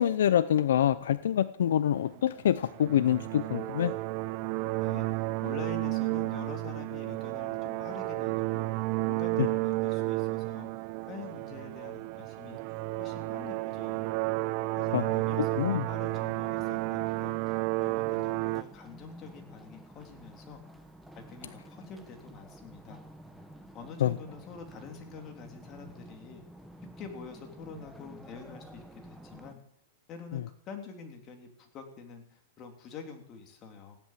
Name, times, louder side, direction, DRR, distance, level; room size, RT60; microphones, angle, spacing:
voice 1, 0.0-3.9 14.9-15.1 15.5-15.8 24.0-24.1, left 10 dB, 75° left, 16 dB, 0.6 m, -26 dB
sound 1, 2.0-18.6, right 21 dB, 40° right, 0.5 m, -32 dB
voice 2, 4.8-8.7 9.1-10.7 11.1-12.6 13.0-14.1 14.8-17.4 17.8-20.6 21.2-23.0 23.7-26.4 27.0-29.6 30.1-34.0, left 5 dB, 30° left, 3 dB, 3.5 m, -46 dB
sound 2, 15.1-29.5, right 1 dB, ahead, 1.4 m, -51 dB
16.0 x 10.5 x 7.6 m, 0.72 s
hypercardioid pair, 145°, 0 cm